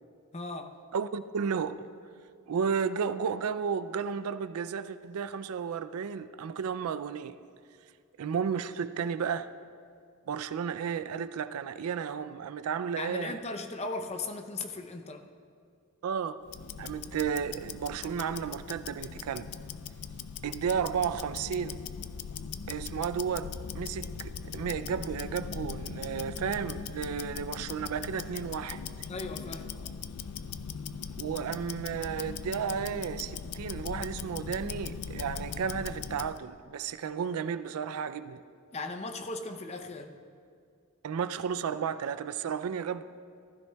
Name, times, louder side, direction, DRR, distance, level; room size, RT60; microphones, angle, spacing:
voice 1, 0.3-0.8 13.0-15.2 29.1-29.7 38.7-40.1, left 3 dB, 30° left, 0.6 m, -37 dB
voice 2, 0.9-1.9 2.5-7.4 8.2-9.5 10.3-13.4 16.0-16.4 16.8-19.5 20.4-21.8 22.7-29.1 31.2-38.4 41.0-43.0, right 7 dB, 80° right, 0.4 m, -33 dB
Tick-tock, 16.4-36.4, left 6 dB, 85° left, 0.4 m, -40 dB
15.0 x 13.0 x 2.3 m
head